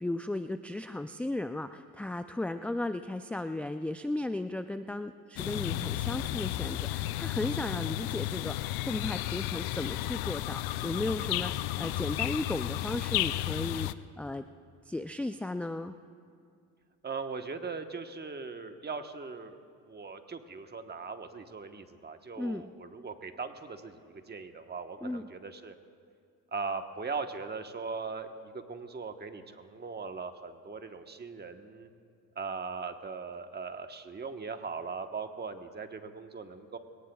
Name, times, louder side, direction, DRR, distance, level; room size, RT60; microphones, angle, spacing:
voice 1, 0.0-13.9 14.2-14.5 14.9-16.0 22.4-22.6 25.0-25.2, left 2 dB, 5° left, 9 dB, 0.3 m, -35 dB
sound 1, 5.4-13.9, left 15 dB, 85° left, 0.5 m, -33 dB
voice 2, 17.0-19.6 19.9-25.7 26.5-31.9 32.4-36.8, right 4 dB, 30° right, 6 dB, 1.2 m, -39 dB
23.5 x 18.0 x 2.3 m, 2.3 s
supercardioid pair, 80°, 35 cm